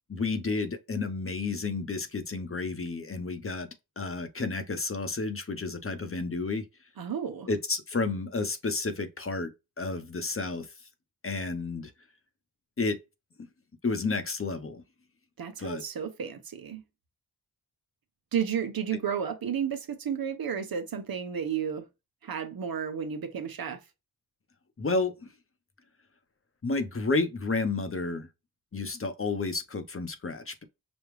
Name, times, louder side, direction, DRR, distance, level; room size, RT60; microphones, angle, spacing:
voice 1, 0.1-3.7 4.0-6.6 7.5-10.7 11.2-11.9 12.8-13.0 13.8-14.8 15.6-15.8 24.8-25.3 26.6-28.3 28.7-30.6, left 3 dB, 35° left, 0.9 m, -31 dB
voice 2, 7.0-7.5 15.4-16.8 18.3-21.9 22.2-23.8, right 7 dB, 70° right, 0.9 m, -32 dB
5.2 x 2.3 x 3.2 m
cardioid pair, 60°, 37 cm